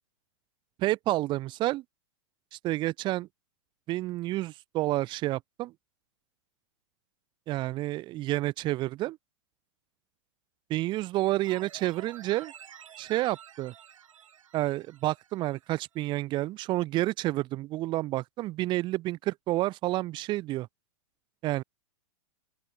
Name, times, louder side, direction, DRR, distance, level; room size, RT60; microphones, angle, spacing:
voice 1, 0.8-1.8 2.5-3.3 3.9-5.7 7.5-9.2 10.7-12.5 13.0-13.7 14.5-20.7 21.4-21.6, right 17 dB, 30° right, 0.8 m, -29 dB
sound 1, 11.4-15.7 16.0-16.1, right 9 dB, 85° right, 5.6 m, -50 dB
open air
hypercardioid pair, 140°, 16 cm